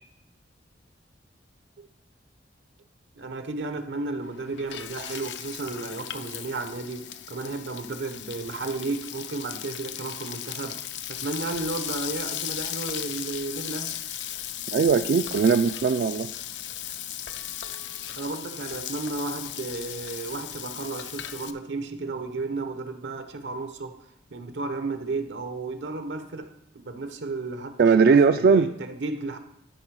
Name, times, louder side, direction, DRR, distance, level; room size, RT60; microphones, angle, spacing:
voice 1, 3.2-10.8 11.1-13.9 18.2-24.0 24.3-29.4, right 3 dB, 85° right, 8 dB, 0.9 m, -33 dB
Frying (food), 4.2-21.5, left 11 dB, 80° left, 0.5 m, -36 dB
voice 2, 14.7-16.3 27.8-28.7, right 5 dB, 60° right, 9 dB, 0.3 m, -19 dB
12.0 x 5.2 x 4.8 m, 0.86 s
head